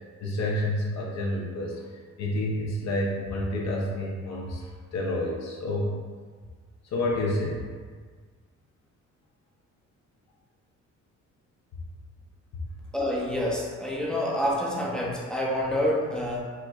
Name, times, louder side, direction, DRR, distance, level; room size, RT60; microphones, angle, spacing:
voice 1, 0.2-1.8 2.2-5.9 6.9-7.7, left 1 dB, 60° left, -3 dB, 0.6 m, -29 dB
voice 2, 12.9-16.4, left 1 dB, 5° left, -4 dB, 0.5 m, -27 dB
4.3 x 2.1 x 2.3 m, 1.6 s
cardioid pair, 90°, 30 cm